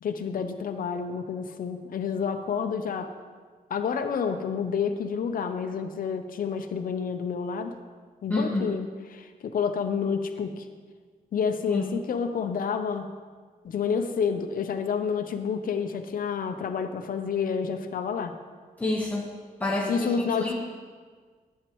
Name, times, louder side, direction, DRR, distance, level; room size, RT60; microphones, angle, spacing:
voice 1, 0.0-3.1 3.7-7.8 8.2-10.7 11.3-13.1 13.6-18.3 19.9-20.5, left 6 dB, 70° left, 7 dB, 0.6 m, -29 dB
voice 2, 8.3-8.8 11.7-11.9 18.8-19.3 19.6-20.5, left 2 dB, 10° left, -4 dB, 1.1 m, -28 dB
11.0 x 8.2 x 3.1 m, 1.6 s
wide cardioid pair, 100°, 15 cm